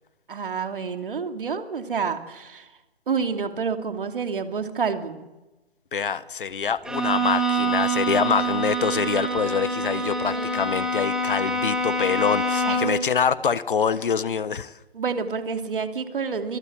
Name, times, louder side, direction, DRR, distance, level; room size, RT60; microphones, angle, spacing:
voice 1, 0.3-2.7 3.1-5.3 10.3-10.7 12.6-12.8 14.9-16.6, right 5 dB, 55° right, 2.9 m, -28 dB
voice 2, 5.9-14.7, left 6 dB, 50° left, 1.3 m, -25 dB
Bowed string instrument, 6.8-13.1, right 1 dB, ahead, 2.0 m, -25 dB
25.5 x 20.0 x 7.4 m
figure-of-eight pair, 155°, 32 cm